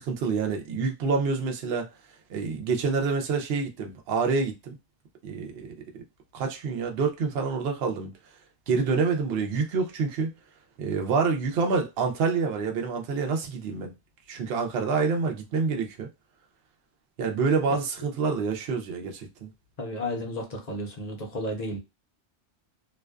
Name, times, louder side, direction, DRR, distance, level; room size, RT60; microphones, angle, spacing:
voice 1, 0.0-1.9 2.3-4.8 5.2-5.7 6.3-8.1 8.7-10.3 10.8-13.9 14.3-16.1 17.2-19.5, right 5 dB, 65° right, 0.8 m, -27 dB
voice 2, 19.8-21.8, left 1 dB, 45° left, 0.6 m, -32 dB
2.5 x 2.2 x 2.3 m
omnidirectional pair, 1.2 m